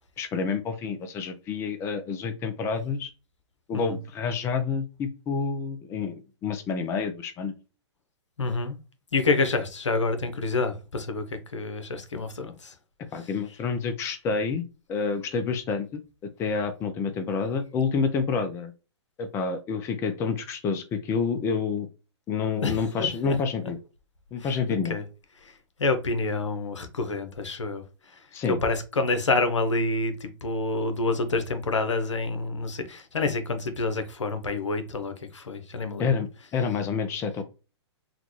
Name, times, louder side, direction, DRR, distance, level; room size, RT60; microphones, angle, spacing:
voice 1, 0.2-3.1 3.7-7.5 13.1-14.6 14.9-18.7 19.2-21.9 22.3-23.8 24.3-25.0 28.3-28.6 36.0-37.4, left 5 dB, 20° left, 0.4 m, -28 dB
voice 2, 8.4-8.8 9.1-11.2 11.5-12.7 22.6-23.3 23.6-23.7 24.4-24.6 24.9-25.0 25.8-27.8 28.5-36.1, left 3 dB, 80° left, 0.8 m, -28 dB
3.8 x 2.2 x 3.1 m
hypercardioid pair, 120°, 15 cm